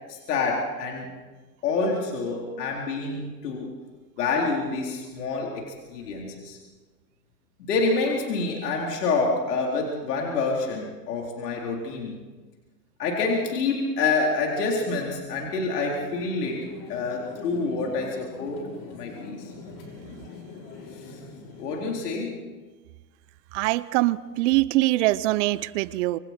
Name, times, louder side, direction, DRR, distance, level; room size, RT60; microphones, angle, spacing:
voice 1, 0.1-1.1 1.6-3.7 4.2-6.6 7.6-12.2 13.0-18.6 18.9-19.5 21.0-21.2 21.6-22.5, left 3 dB, 70° left, -1 dB, 4.1 m, -27 dB
sound 1, 16.0-22.0, left 4 dB, 45° left, 6.6 m, -42 dB
voice 2, 23.5-26.2, right 18 dB, 45° right, 18 dB, 0.8 m, -23 dB
26.5 x 24.5 x 4.5 m, 1.3 s
hypercardioid pair, 115°, 49 cm